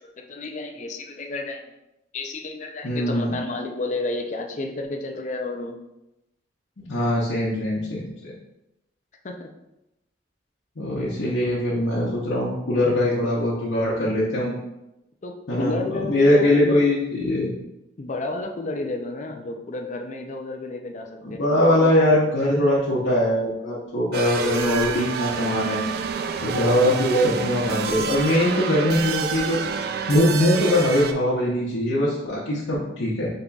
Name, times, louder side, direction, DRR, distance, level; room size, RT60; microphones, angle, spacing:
voice 1, 0.0-1.7 2.1-5.8 9.2-9.5 15.2-16.8 18.0-22.3, left 2 dB, 40° left, 4 dB, 0.5 m, -31 dB
voice 2, 2.8-3.3 6.8-8.3 10.8-14.5 15.5-17.5 21.2-25.8 26.4-33.3, left 1 dB, 85° left, -8 dB, 0.9 m, -22 dB
sound 1, 24.1-31.1, right 6 dB, 55° right, 0.3 m, -28 dB
5.4 x 3.6 x 2.3 m, 0.91 s
head